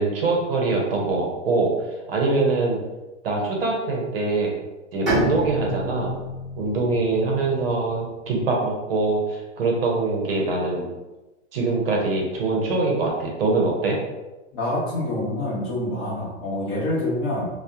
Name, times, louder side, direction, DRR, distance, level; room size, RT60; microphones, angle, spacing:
voice 1, 0.0-1.7 2.1-2.8 3.2-4.5 4.9-6.1 6.6-10.9 11.5-14.0, right 3 dB, 50° right, -1 dB, 0.6 m, -23 dB
Bowed string instrument, 5.1-8.7, equal, ahead, 0.6 m, -30 dB
voice 2, 14.5-17.5, left 1 dB, 40° left, -6 dB, 0.9 m, -26 dB
2.7 x 2.0 x 2.3 m, 1.1 s
supercardioid pair, 175°, 37 cm